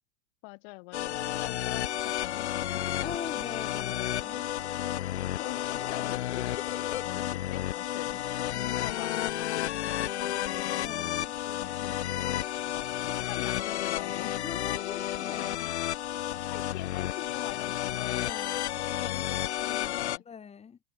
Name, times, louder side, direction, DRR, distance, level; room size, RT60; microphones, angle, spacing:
voice 1, 0.4-3.1 4.4-4.5 5.4-6.6 7.0-8.1 8.6-9.1 9.4-11.0 11.4-12.0 12.7-14.5 15.1-15.7 16.5-18.3 18.8-20.2, left 32 dB, 45° left, 7.7 m, -44 dB
sound 1, 0.9-20.2, left 13 dB, 65° left, 0.6 m, -32 dB
voice 2, 3.0-4.4 5.2-5.5 8.1-8.2 10.7-11.3 14.4-15.6 18.1-18.7 20.3-20.8, left 6 dB, 15° left, 2.2 m, -42 dB
figure-of-eight pair, 95°, 36 cm